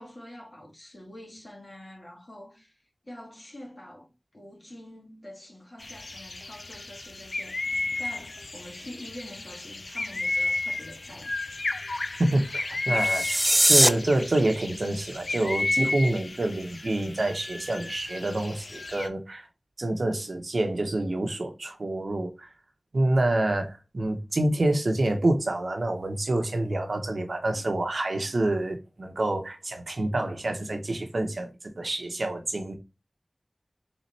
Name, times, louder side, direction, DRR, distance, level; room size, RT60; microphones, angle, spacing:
voice 1, 0.0-2.8 3.0-11.3 27.5-27.6 28.2-28.3, left 1 dB, 50° left, 2.3 m, -46 dB
sound 1, 5.8-19.1, left 2 dB, 85° left, 0.5 m, -33 dB
voice 2, 12.2-19.5 19.8-22.5 22.9-32.7, right 1 dB, 90° right, 0.9 m, -27 dB
sound 2, 12.9-13.9, right 1 dB, 20° right, 0.3 m, -20 dB
4.1 x 3.5 x 3.3 m
wide cardioid pair, 50°, 0 cm